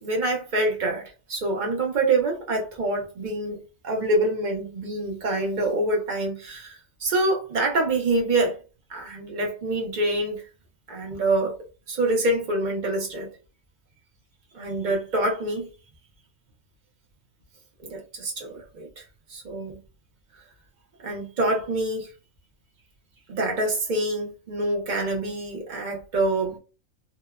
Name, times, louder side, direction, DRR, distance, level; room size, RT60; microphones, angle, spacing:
voice 1, 0.0-8.6 8.9-10.4 10.9-11.6 11.9-13.3 14.5-15.7 17.8-19.0 19.3-19.8 21.0-22.1 23.3-26.6, right 2 dB, 50° right, 0.6 m, -26 dB
2.8 x 2.1 x 2.3 m
omnidirectional pair, 1.4 m